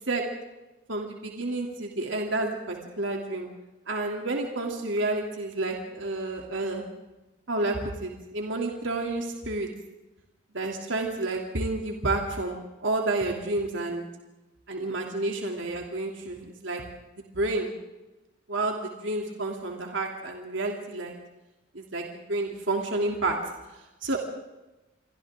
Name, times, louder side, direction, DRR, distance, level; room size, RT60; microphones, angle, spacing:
voice 1, 0.9-3.5 3.9-6.8 7.5-9.7 10.5-14.0 14.7-16.8 17.2-17.7 18.5-21.1 21.7-23.4 24.0-24.2, right 2 dB, 75° right, 1 dB, 3.2 m, -30 dB
30.0 x 24.0 x 3.8 m, 1.0 s
head